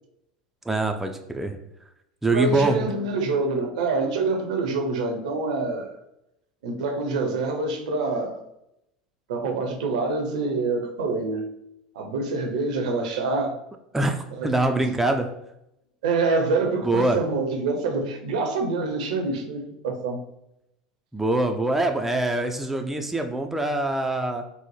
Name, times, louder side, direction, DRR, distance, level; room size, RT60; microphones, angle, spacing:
voice 1, 0.7-1.6 2.2-2.9 13.9-15.3 16.8-17.2 21.1-24.4, right 2 dB, 5° right, 4 dB, 0.3 m, -24 dB
voice 2, 2.3-6.0 6.6-8.4 9.3-11.5 12.0-13.5 14.3-14.5 14.8-14.9 16.0-20.2, right 3 dB, 65° right, 4 dB, 0.6 m, -26 dB
3.9 x 2.0 x 3.1 m, 0.82 s
figure-of-eight pair, 75°, 4 cm